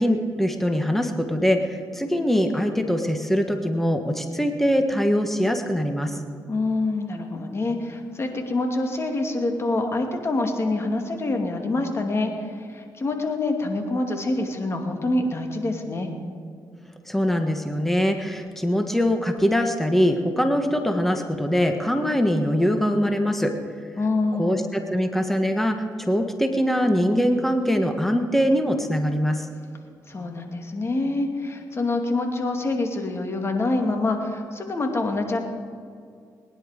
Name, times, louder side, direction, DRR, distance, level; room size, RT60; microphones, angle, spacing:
voice 1, 0.0-6.2 17.1-23.5 24.4-29.5, equal, 5° left, 5 dB, 1.4 m, -22 dB
voice 2, 6.5-16.1 24.0-24.6 30.1-35.4, left 2 dB, 35° left, 3 dB, 2.4 m, -26 dB
20.5 x 10.5 x 5.1 m, 2.2 s
cardioid pair, 70°, 7 cm